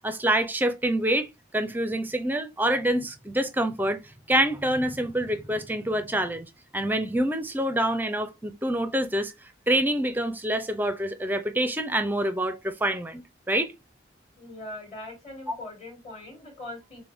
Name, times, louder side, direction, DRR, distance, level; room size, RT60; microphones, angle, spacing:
voice 1, 0.0-1.3 1.5-4.0 4.3-6.5 6.7-9.3 9.7-13.7 15.5-15.6, right 1 dB, 10° right, 0.6 m, -26 dB
voice 2, 14.4-17.0, left 1 dB, 35° left, 3.1 m, -41 dB
6.7 x 2.2 x 3.5 m
head